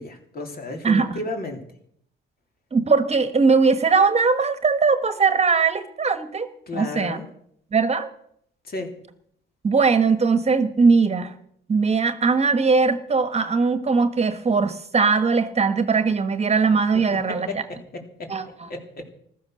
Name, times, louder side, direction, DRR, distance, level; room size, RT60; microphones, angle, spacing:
voice 1, 0.0-1.6 6.7-7.3 8.6-9.0 17.1-17.2 17.5-19.1, left 2 dB, 50° left, 3 dB, 3.4 m, -33 dB
voice 2, 2.7-7.2 7.7-8.1 9.6-11.3 11.7-17.6 18.3-18.4, right 4 dB, 35° right, 11 dB, 1.4 m, -20 dB
15.0 x 13.0 x 6.5 m, 0.70 s
cardioid pair, 90°, 20 cm